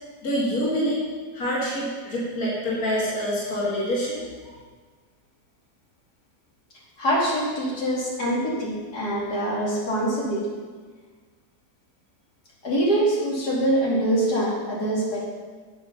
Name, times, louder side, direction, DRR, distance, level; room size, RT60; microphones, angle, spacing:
voice 1, 0.2-4.5, equal, 65° left, -6 dB, 2.7 m, -26 dB
voice 2, 7.0-10.5 12.6-15.3, right 1 dB, 85° left, -5 dB, 3.4 m, -24 dB
18.0 x 6.0 x 5.6 m, 1.5 s
omnidirectional pair, 1.7 m